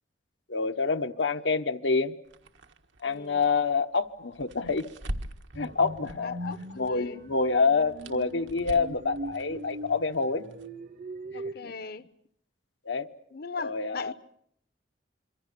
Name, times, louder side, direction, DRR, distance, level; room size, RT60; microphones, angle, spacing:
voice 1, 0.5-2.1 3.0-4.8 5.5-6.4 6.8-10.4 11.6-11.7 12.8-13.1 13.6-14.1, left 4 dB, 75° left, 1.1 m, -27 dB
sound 1, 2.2-6.9 7.2-10.7, right 1 dB, 80° right, 1.6 m, -43 dB
voice 2, 3.0-3.5 6.2-7.2 11.3-12.1 13.3-14.1, left 4 dB, 55° left, 0.9 m, -39 dB
sound 2, 5.5-11.5, right 1 dB, 50° right, 1.0 m, -41 dB
26.5 x 24.5 x 6.8 m
head